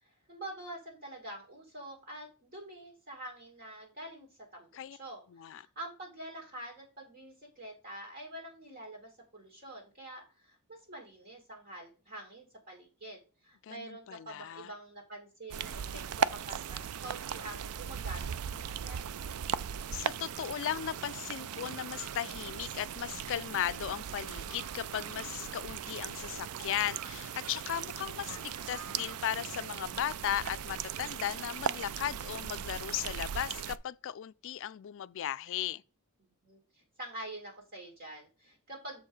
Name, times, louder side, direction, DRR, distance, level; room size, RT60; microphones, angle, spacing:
voice 1, 0.0-19.1 28.3-28.7 36.2-39.1, right 1 dB, 45° right, 2.2 m, -46 dB
voice 2, 5.3-5.6 13.6-14.7 19.9-35.8, left 10 dB, 60° left, 0.3 m, -36 dB
sound 1, 15.5-33.8, right 8 dB, 80° right, 0.4 m, -38 dB
7.0 x 4.7 x 4.7 m
head